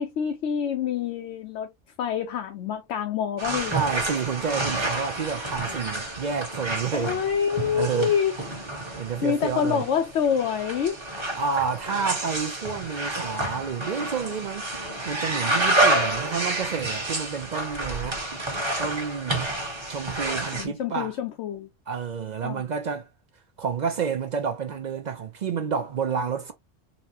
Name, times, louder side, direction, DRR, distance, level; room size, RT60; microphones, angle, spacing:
voice 1, 0.0-1.7 2.0-3.7 6.9-8.4 9.2-11.0 20.5-21.7 22.4-22.6, left 8 dB, 75° left, 0.9 m, -26 dB
sound 1, 3.4-20.6, right 2 dB, 25° right, 1.1 m, -29 dB
voice 2, 3.7-7.2 7.7-8.1 9.0-9.9 11.4-14.7 15.1-18.2 18.8-19.5 19.9-21.1 21.9-23.1 23.6-26.5, right 6 dB, 55° right, 0.5 m, -29 dB
4.1 x 2.1 x 2.7 m
omnidirectional pair, 1.3 m